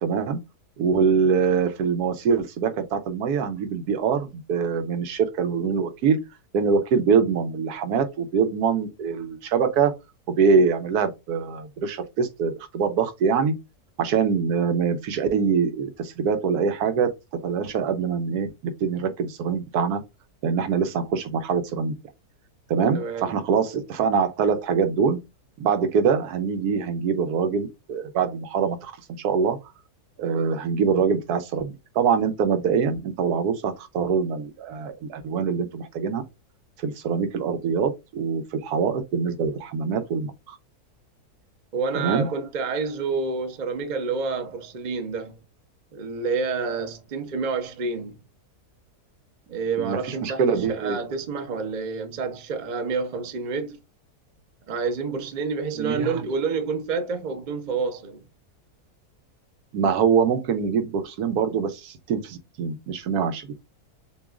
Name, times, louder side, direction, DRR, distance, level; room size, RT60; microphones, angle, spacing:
voice 1, 0.0-0.4 0.8-6.2 6.5-10.0 10.4-13.5 14.0-17.1 17.4-20.0 20.4-21.9 22.7-25.2 25.6-28.9 29.2-29.6 30.2-36.2 36.8-40.6 41.9-42.3 49.8-51.0 55.8-56.2 59.7-63.5, right 6 dB, 80° right, 1.2 m, -24 dB
voice 2, 22.9-23.3 41.7-45.4 45.9-48.2 49.5-53.8 54.7-58.2, right 4 dB, 45° right, 0.6 m, -28 dB
6.9 x 2.3 x 2.4 m
omnidirectional pair, 1.7 m